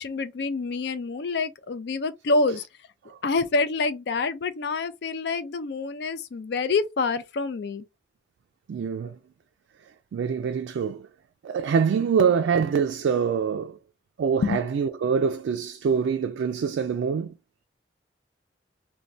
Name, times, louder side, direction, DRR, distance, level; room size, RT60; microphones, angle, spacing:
voice 1, 0.0-2.7 3.2-7.8 14.4-14.6, left 3 dB, 60° left, 0.4 m, -27 dB
voice 2, 8.7-9.2 10.1-11.1 11.4-13.8 14.2-17.3, right 6 dB, 85° right, 0.3 m, -25 dB
2.6 x 2.2 x 3.1 m
head